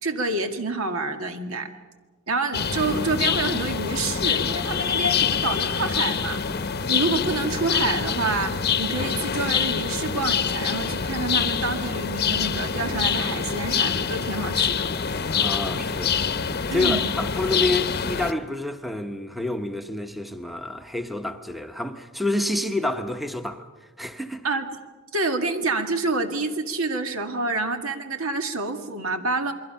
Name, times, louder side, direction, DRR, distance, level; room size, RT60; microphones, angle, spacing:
voice 1, 0.0-1.7 2.3-6.4 6.9-14.9 16.7-17.1 24.4-24.7 25.1-29.5, right 3 dB, 75° right, 1.9 m, -27 dB
sound 1, 2.5-18.3, left 6 dB, 50° left, 0.9 m, -25 dB
voice 2, 15.4-16.2 16.7-23.7 24.0-24.5, left 1 dB, ahead, 1.0 m, -28 dB
28.5 x 22.0 x 5.7 m
head